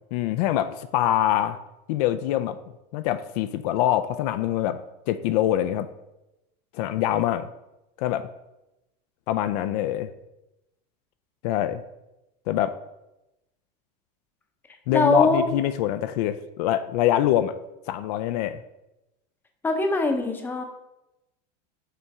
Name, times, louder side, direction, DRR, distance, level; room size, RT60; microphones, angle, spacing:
voice 1, 0.1-1.6 1.9-2.6 2.9-4.8 5.1-5.9 6.7-7.5 8.0-8.3 9.3-10.1 11.4-11.8 12.5-12.7 14.9-17.5 17.9-18.6, left 12 dB, 70° left, 11 dB, 0.4 m, -24 dB
voice 2, 14.9-15.4 19.6-20.6, left 3 dB, 10° left, 4 dB, 0.6 m, -22 dB
6.8 x 4.3 x 3.6 m, 0.94 s
supercardioid pair, 140°, 21 cm